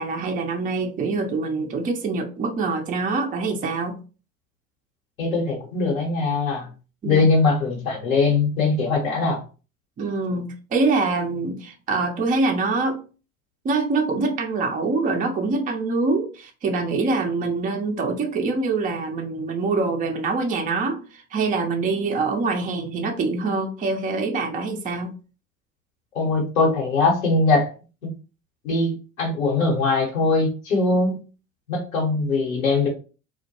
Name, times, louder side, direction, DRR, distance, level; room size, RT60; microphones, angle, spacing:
voice 1, 0.0-4.0 7.0-7.3 10.0-13.0 13.6-25.1, right 3 dB, 20° right, 3 dB, 0.5 m, -25 dB
voice 2, 5.2-6.6 7.0-9.4 26.1-27.7 28.0-28.1 28.6-31.2 31.7-32.9, left 3 dB, 80° left, -2 dB, 1.1 m, -21 dB
2.2 x 2.1 x 2.8 m, 0.34 s
figure-of-eight pair, 70°, 40 cm